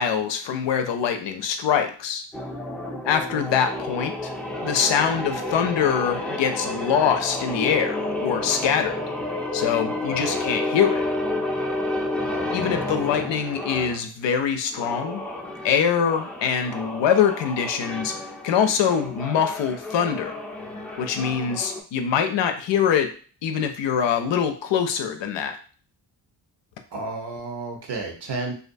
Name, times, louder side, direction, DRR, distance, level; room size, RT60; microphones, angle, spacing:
voice 1, 0.0-2.2 3.0-4.3 4.6-9.0 9.5-11.0 12.5-15.2 15.6-18.1 18.4-20.3 21.0-23.1 23.4-25.6, left 7 dB, 65° left, 6 dB, 0.6 m, -23 dB
sound 1, 2.3-14.0 14.7-21.8, left 1 dB, 5° left, 0.6 m, -30 dB
voice 2, 10.1-10.5 12.3-13.9 26.9-28.5, right 3 dB, 55° right, 2 dB, 0.9 m, -34 dB
2.5 x 2.2 x 2.5 m, 0.40 s
supercardioid pair, 55°, 47 cm